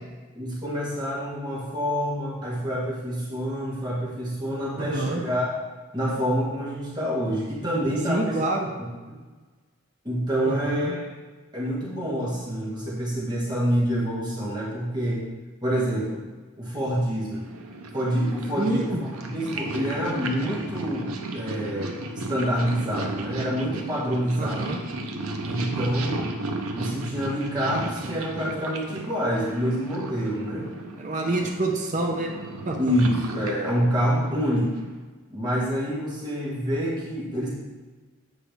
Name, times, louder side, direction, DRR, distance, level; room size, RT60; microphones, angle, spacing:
voice 1, 0.3-5.5 5.9-8.4 8.8-8.9 10.0-11.1 11.5-15.3 15.6-16.2 16.6-17.4 17.9-18.9 19.3-24.7 25.4-26.2 26.7-30.7 31.3-31.4 32.8-34.7 35.3-37.5, equal, 20° right, -6 dB, 1.4 m, -27 dB
voice 2, 4.8-5.2 8.1-8.7 10.5-10.9 18.6-19.0 24.4-24.8 31.0-32.3 32.7-32.8, right 2 dB, 35° right, 0 dB, 0.6 m, -27 dB
Purr, 17.4-35.0, right 2 dB, 80° right, 0.7 m, -35 dB
8.2 x 4.9 x 3.4 m, 1.3 s
head